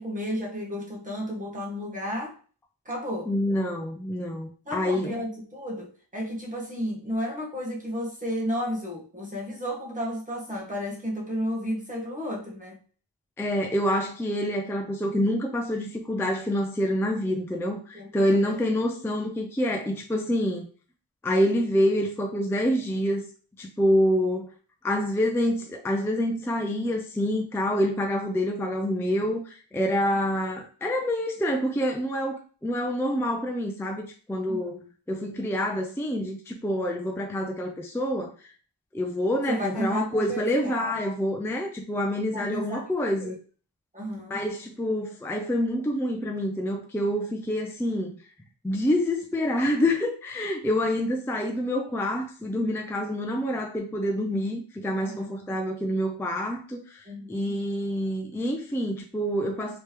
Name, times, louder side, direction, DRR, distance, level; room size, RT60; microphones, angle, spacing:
voice 1, 0.0-2.4 2.8-3.3 4.6-12.8 17.9-18.6 34.5-34.9 39.5-40.9 42.3-42.9 43.2-43.4 43.9-44.4 55.0-55.3 57.0-57.6, equal, 20° right, 1.2 m, -33 dB
voice 2, 3.3-5.2 13.4-20.6 21.2-23.2 23.6-24.5 24.8-34.8 35.1-38.5 38.9-43.3 44.3-48.1 48.6-59.8, equal, 5° left, 0.5 m, -27 dB
3.3 x 3.0 x 3.3 m
wide cardioid pair, 110°, 44 cm